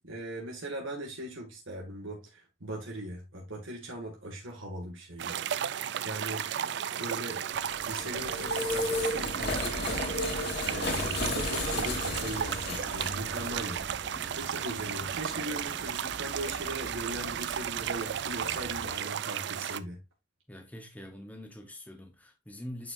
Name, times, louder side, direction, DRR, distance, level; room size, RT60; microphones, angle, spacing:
voice 1, 0.0-6.4 7.0-7.6 7.9-10.0 10.3-13.9 14.3-20.0, right 1 dB, 85° right, 2.0 m, -39 dB
sound 1, 5.2-19.8, right 9 dB, 60° right, 0.4 m, -34 dB
sound 2, 7.5-19.0, left 2 dB, 55° left, 2.0 m, -36 dB
voice 2, 20.5-22.9, left 1 dB, 10° left, 0.9 m, -44 dB
9.3 x 4.5 x 2.6 m
head